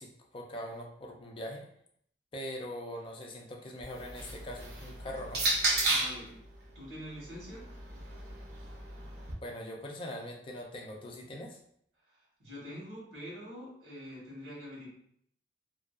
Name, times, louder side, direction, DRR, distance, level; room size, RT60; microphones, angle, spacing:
voice 1, 0.0-1.7 2.3-5.4 9.4-11.6, left 1 dB, 30° left, 1 dB, 0.3 m, -42 dB
sound 1, 3.8-6.3 7.2-9.3, right 2 dB, 60° right, 0.7 m, -33 dB
voice 2, 5.8-6.4 6.7-7.7 12.4-14.9, equal, 85° right, -5 dB, 1.3 m, -45 dB
2.6 x 2.3 x 2.4 m, 0.66 s
head